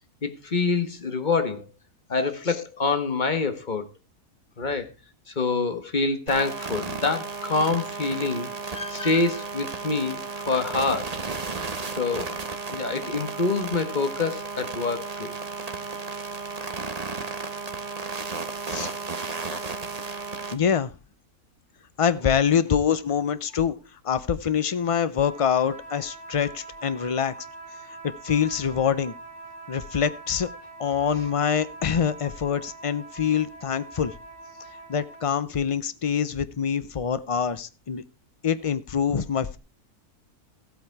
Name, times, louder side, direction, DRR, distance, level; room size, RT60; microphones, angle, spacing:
voice 1, 0.2-1.6 2.1-3.8 4.6-4.9 5.4-11.2 12.0-12.4 12.7-15.3, left 4 dB, 30° left, 1.4 m, -26 dB
sound 1, 6.3-20.5, right 4 dB, 30° right, 1.2 m, -34 dB
voice 2, 20.5-20.9 22.0-23.8 24.0-27.3 28.2-29.1 29.7-30.5 30.8-34.1 34.9-38.0 38.4-39.6, left 7 dB, 60° left, 0.3 m, -25 dB
sound 2, 25.1-35.3, right 3 dB, 5° left, 6.1 m, -43 dB
14.5 x 8.3 x 4.6 m
omnidirectional pair, 1.6 m